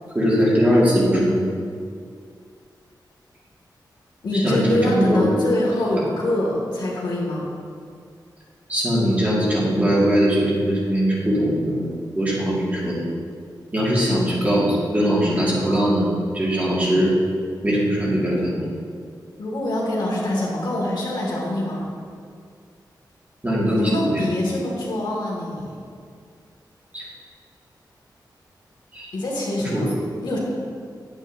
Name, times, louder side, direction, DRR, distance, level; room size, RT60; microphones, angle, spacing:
voice 1, 0.1-1.4 4.3-5.3 8.7-11.9 12.2-13.0 13.7-17.1 17.6-18.7 23.4-24.3 26.9-27.1 28.9-29.1 29.6-29.9, equal, 20° right, -7 dB, 1.9 m, -20 dB
voice 2, 4.2-7.5 15.7-15.9 19.4-21.9 23.7-25.8 29.1-29.9 30.2-30.4, left 1 dB, 75° left, -4 dB, 2.0 m, -24 dB
9.6 x 8.8 x 2.6 m, 2.2 s
wide cardioid pair, 160°, 8 cm